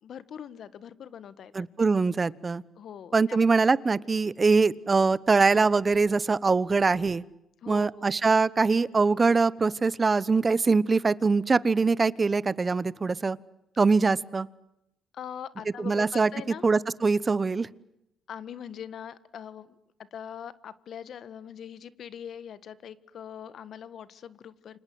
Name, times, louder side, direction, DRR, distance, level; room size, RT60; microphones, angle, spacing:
voice 1, 0.0-1.6 2.8-3.6 7.6-8.1 15.1-16.6 18.3-19.7 20.1-24.8, left 8 dB, 65° left, 16 dB, 1.6 m, -42 dB
voice 2, 1.5-2.6 3.1-7.2 7.7-13.4 13.8-14.5 15.8-16.3 16.6-17.7, right 4 dB, 30° right, 20 dB, 1.0 m, -23 dB
29.5 x 26.0 x 7.9 m, 0.85 s
cardioid pair, 90°, 0 cm